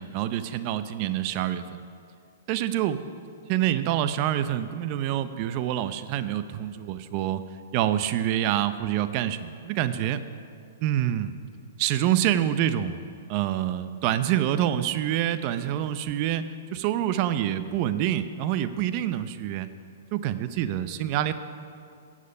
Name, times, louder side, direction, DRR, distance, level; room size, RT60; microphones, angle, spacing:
voice 1, 0.0-1.6 2.5-3.0 3.5-7.4 7.7-10.2 10.8-11.3 11.8-13.0 13.3-19.7 20.1-21.3, right 11 dB, 40° right, 12 dB, 0.6 m, -26 dB
15.0 x 7.5 x 5.5 m, 2.4 s
hypercardioid pair, 140°, 0 cm